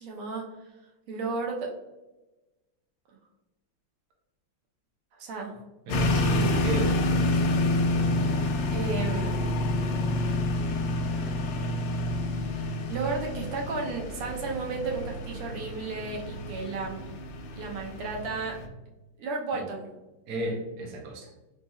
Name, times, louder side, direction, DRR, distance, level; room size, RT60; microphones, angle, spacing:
voice 1, 0.0-0.4 1.1-1.7 5.2-5.6 8.7-9.4 12.9-17.0 17.5-18.6 19.2-19.9, right 3 dB, 90° right, 0 dB, 1.7 m, -33 dB
sound 1, 5.9-18.7, left 2 dB, 85° left, 1.5 m, -28 dB
voice 2, 5.9-7.0 19.5-19.7 20.3-21.3, right 2 dB, 65° right, 0 dB, 1.0 m, -33 dB
4.3 x 3.0 x 2.2 m, 1.1 s
omnidirectional pair, 2.3 m